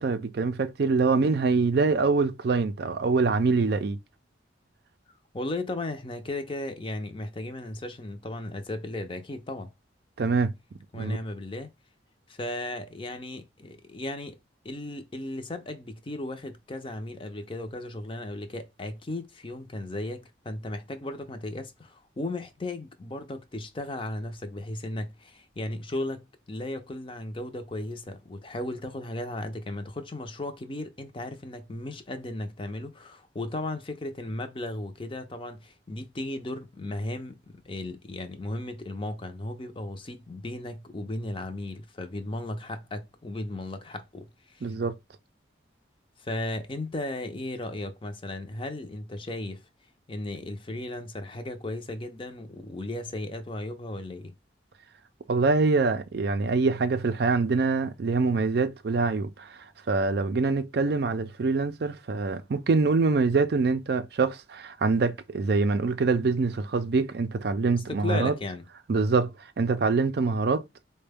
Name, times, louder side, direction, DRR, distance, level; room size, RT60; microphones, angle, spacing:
voice 1, 0.0-4.0 10.2-10.5 10.9-11.2 44.6-44.9 55.3-59.6 59.9-68.3 68.9-70.6, right 4 dB, 60° right, 0.4 m, -25 dB
voice 2, 5.3-9.7 10.9-11.7 12.3-14.4 14.6-44.7 46.2-49.6 50.1-54.3 67.9-68.6, left 1 dB, 30° left, 0.5 m, -35 dB
4.3 x 2.2 x 3.4 m
head